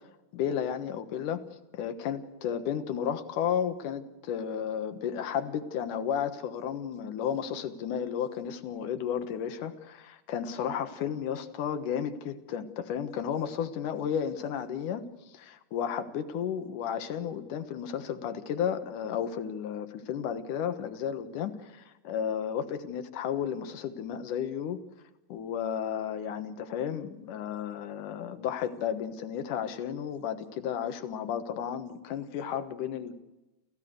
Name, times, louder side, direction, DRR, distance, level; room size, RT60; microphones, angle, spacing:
voice 1, 0.3-1.4 1.7-24.8 25.3-33.1, left 8 dB, 75° left, 9 dB, 2.8 m, -33 dB
29.5 x 15.5 x 6.5 m, 1.0 s
omnidirectional pair, 3.7 m